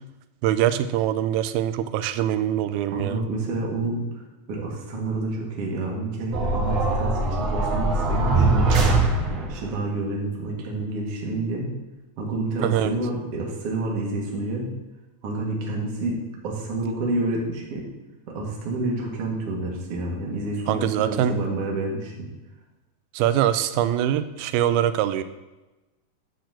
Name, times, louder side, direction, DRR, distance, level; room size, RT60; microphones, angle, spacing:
voice 1, 0.4-3.2 12.6-13.0 20.7-21.4 23.1-25.2, right 11 dB, 85° right, 11 dB, 2.5 m, -23 dB
voice 2, 2.9-8.7 9.5-11.7 12.2-14.7 15.2-17.9 18.3-22.3, right 2 dB, 50° right, -2 dB, 2.4 m, -29 dB
sound 1, 6.3-9.7, right 2 dB, 65° right, 2.5 m, -22 dB
10.0 x 4.4 x 7.5 m, 1.1 s
omnidirectional pair, 4.3 m